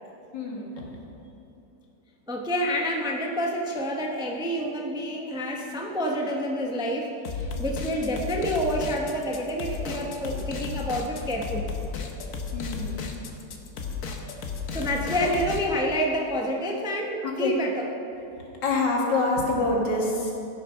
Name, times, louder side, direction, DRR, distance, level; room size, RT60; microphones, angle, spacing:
voice 1, 0.3-0.8 12.5-13.0 13.7-13.9 15.2-15.3 17.2-17.6 18.3-20.3, left 2 dB, 80° left, -1 dB, 2.4 m, -27 dB
voice 2, 2.3-11.7 13.8-14.0 14.7-17.8, equal, 5° right, 1 dB, 0.6 m, -28 dB
sound 1, 7.2-15.6, left 5 dB, 55° left, 1.2 m, -33 dB
15.5 x 6.5 x 5.6 m, 2.9 s
omnidirectional pair, 1.9 m